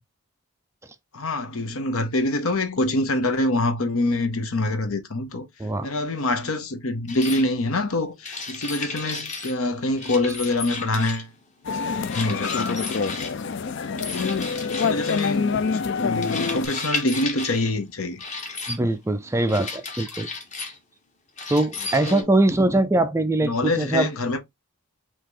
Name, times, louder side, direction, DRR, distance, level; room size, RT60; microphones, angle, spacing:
voice 1, 1.1-5.5 5.8-11.3 12.1-12.8 13.8-14.1 14.7-18.2 22.1-22.3 23.4-24.4, left 2 dB, 70° left, 0.9 m, -25 dB
voice 2, 5.6-5.9 18.7-20.3 21.5-24.1, right 2 dB, 10° right, 0.3 m, -22 dB
sound 1, 7.1-7.4 8.2-9.6 10.0-11.3 12.0-13.3 14.0-15.3 16.2-17.7 18.2-18.8 19.5-20.8 21.4-22.2, left 3 dB, 30° left, 1.1 m, -33 dB
sound 2, 11.6-16.7, left 5 dB, 55° left, 0.4 m, -26 dB
3.6 x 2.9 x 4.7 m
head